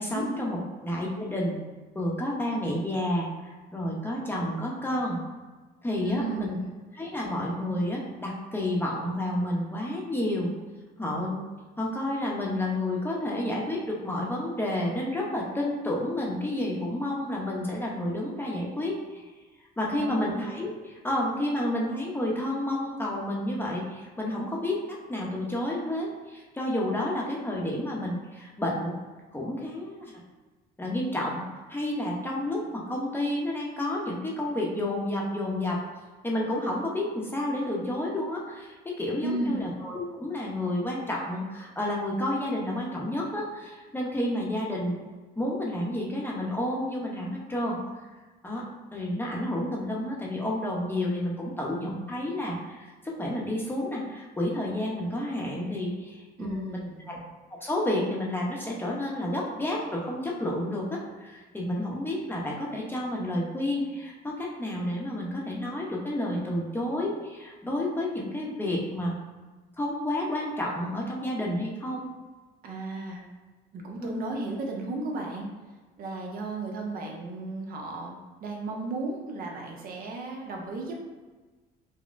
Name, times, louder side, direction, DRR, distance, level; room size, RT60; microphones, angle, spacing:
voice 1, 0.0-1.6 1.9-5.2 5.8-6.6 6.9-10.5 11.0-11.4 11.8-19.2 19.8-29.0 29.3-30.1 30.8-31.4 31.7-35.8 36.2-45.0 45.4-47.8 48.4-48.6 48.9-57.2 57.5-69.2 69.8-72.1 74.0-74.3, left 1 dB, 10° left, -3 dB, 0.7 m, -30 dB
voice 2, 6.0-6.6 19.9-20.2 39.2-39.6 56.4-57.1 72.6-73.3 73.7-75.5 76.0-81.1, right 2 dB, 60° right, 0 dB, 0.7 m, -34 dB
5.1 x 2.1 x 2.5 m, 1.3 s
cardioid pair, 110°, 17 cm